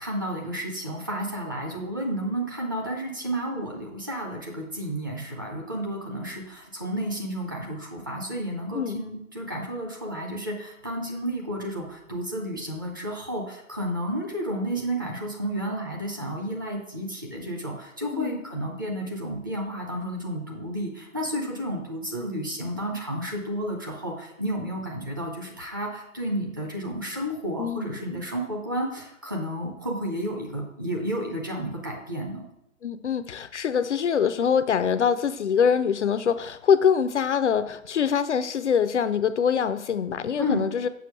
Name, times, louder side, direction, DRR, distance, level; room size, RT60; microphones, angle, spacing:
voice 1, 0.0-32.4 40.4-40.6, equal, 15° right, -1 dB, 0.5 m, -31 dB
voice 2, 27.6-28.0 32.8-40.9, left 7 dB, 55° left, 12 dB, 0.5 m, -24 dB
7.0 x 5.7 x 4.7 m, 0.84 s
figure-of-eight pair, 140°, 42 cm